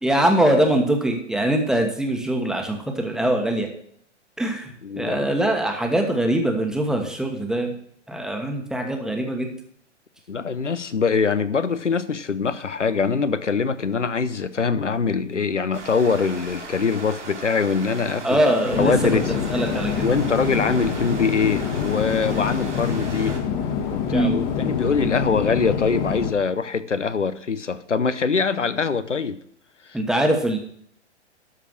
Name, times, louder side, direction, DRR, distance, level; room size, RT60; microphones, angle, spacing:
voice 1, 0.0-3.7 4.4-4.7 5.0-7.7 8.1-9.5 18.2-18.9 19.5-20.0 24.1-24.4 29.9-30.6, right 1 dB, ahead, 3 dB, 1.3 m, -22 dB
voice 2, 4.8-5.3 10.3-19.3 20.0-23.4 23.9-29.4 29.9-30.0, left 5 dB, 90° left, 14 dB, 0.8 m, -23 dB
sound 1, 15.7-23.4, right 3 dB, 75° right, 3.1 m, -38 dB
sound 2, 18.7-26.3, left 7 dB, 35° left, 1.5 m, -26 dB
13.0 x 4.9 x 6.2 m, 0.66 s
figure-of-eight pair, 115°, 35 cm